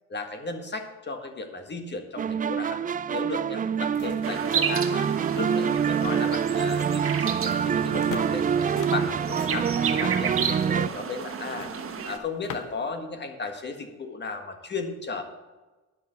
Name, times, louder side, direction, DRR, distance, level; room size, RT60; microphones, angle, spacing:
voice 1, 0.1-5.1 5.4-8.4 8.9-11.7 12.0-15.2, left 4 dB, 35° left, 6 dB, 1.7 m, -35 dB
sound 1, 2.2-10.9, right 7 dB, 30° right, 0.3 m, -26 dB
sound 2, 3.7-12.9, left 7 dB, 80° left, 1.0 m, -46 dB
sound 3, 4.2-12.2, right 6 dB, 45° right, 1.3 m, -32 dB
10.5 x 6.1 x 8.2 m, 1.2 s
cardioid pair, 90°, 30 cm